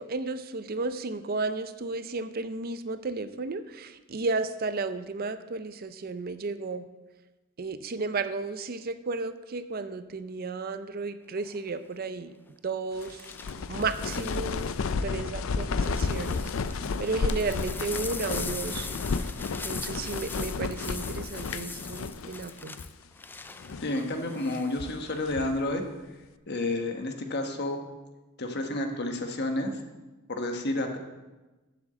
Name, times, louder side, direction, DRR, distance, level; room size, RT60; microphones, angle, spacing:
voice 1, 0.0-6.9 7.6-12.3 12.6-13.3 13.7-14.7 15.0-18.9 19.2-19.3 19.6-22.8, right 3 dB, 45° right, 12 dB, 0.5 m, -33 dB
sound 1, 11.4-11.7 13.0-14.9 15.5-24.7 25.1-25.6, left 4 dB, 10° left, 0.3 m, -42 dB
sound 2, 13.0-22.5 22.8-22.9 23.5-24.0 24.5-25.6, left 4 dB, 70° left, 0.5 m, -32 dB
voice 2, 23.8-25.8 26.5-27.8 28.4-29.7 30.3-31.0, left 2 dB, 50° left, 5 dB, 1.3 m, -30 dB
7.6 x 7.3 x 7.6 m, 1.1 s
head